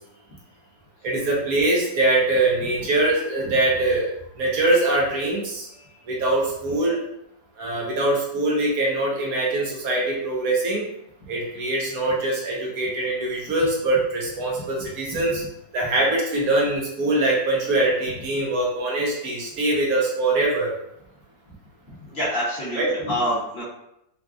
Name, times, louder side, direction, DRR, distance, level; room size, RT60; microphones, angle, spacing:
voice 1, 1.0-4.1 4.4-5.7 6.1-7.0 7.6-10.9 11.3-15.4 15.7-20.7 22.7-23.1, right 2 dB, 65° right, -3 dB, 0.9 m, -23 dB
voice 2, 22.0-23.6, equal, 55° left, -7 dB, 0.7 m, -26 dB
4.0 x 2.3 x 2.3 m, 0.81 s
omnidirectional pair, 2.0 m